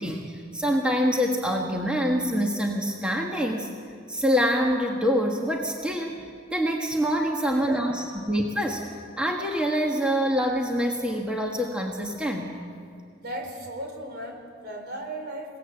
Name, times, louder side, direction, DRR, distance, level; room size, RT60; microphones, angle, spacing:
voice 1, 0.0-3.7 4.1-8.8 9.2-12.6, equal, 5° right, 0 dB, 1.6 m, -25 dB
voice 2, 7.4-8.2 13.2-15.6, right 1 dB, 55° right, 3 dB, 4.2 m, -37 dB
28.5 x 18.5 x 7.9 m, 2.2 s
head